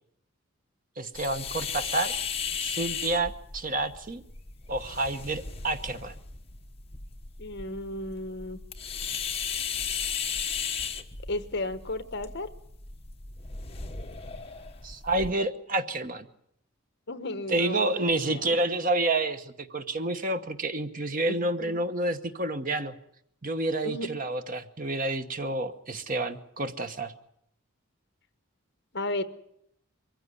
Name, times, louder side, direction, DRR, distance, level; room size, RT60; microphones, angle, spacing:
voice 1, 1.0-2.2 2.6-4.2 4.7-6.1 14.8-16.3 17.5-22.9 23.4-27.1, right 2 dB, 40° right, 9 dB, 1.1 m, -29 dB
sound 1, 1.1-15.3, left 6 dB, 30° left, 1.3 m, -36 dB
voice 2, 7.4-8.6 11.3-12.5 17.1-18.6 21.2-21.4 21.6-21.8 23.8-24.1 28.9-29.2, left 2 dB, 50° left, 11 dB, 1.2 m, -34 dB
23.0 x 15.5 x 9.6 m, 0.74 s
head